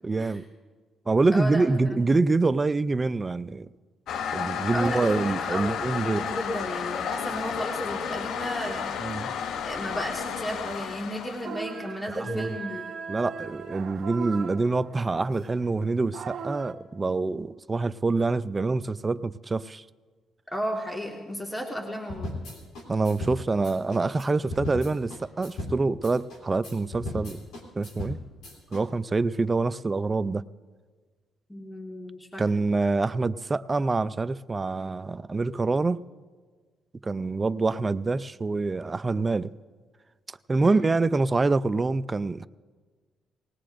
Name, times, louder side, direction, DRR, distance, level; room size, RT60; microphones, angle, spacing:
voice 1, 0.0-0.4 1.1-3.7 4.3-6.3 9.0-9.3 12.1-12.5 13.1-19.8 22.9-27.4 27.8-28.2 28.7-30.4 32.4-36.0 37.0-39.5 40.5-42.5, right 3 dB, 25° right, 0.4 m, -26 dB
voice 2, 1.3-2.0 4.7-9.0 9.6-12.8 20.5-22.3 31.5-32.4 40.6-40.8, equal, 10° left, 1.7 m, -34 dB
Toilet flush, 4.1-11.6, left 7 dB, 75° left, 0.5 m, -32 dB
sound 1, 11.4-16.7, right 6 dB, 65° right, 0.9 m, -39 dB
sound 2, 22.1-28.8, left 2 dB, 90° left, 3.0 m, -37 dB
20.0 x 19.0 x 2.6 m
cardioid pair, 90°, 0 cm